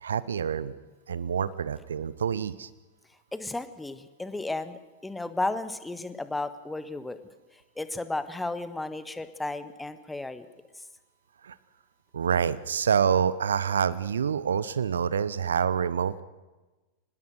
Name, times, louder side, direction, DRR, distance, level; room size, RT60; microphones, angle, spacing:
voice 1, 0.0-0.7 1.1-2.7 11.4-11.5 12.1-16.2, right 7 dB, 70° right, 17 dB, 0.9 m, -27 dB
voice 2, 3.3-7.2 7.8-10.5, left 2 dB, 5° left, 12 dB, 1.4 m, -33 dB
25.0 x 20.0 x 6.4 m, 1.2 s
figure-of-eight pair, 90°, 0 cm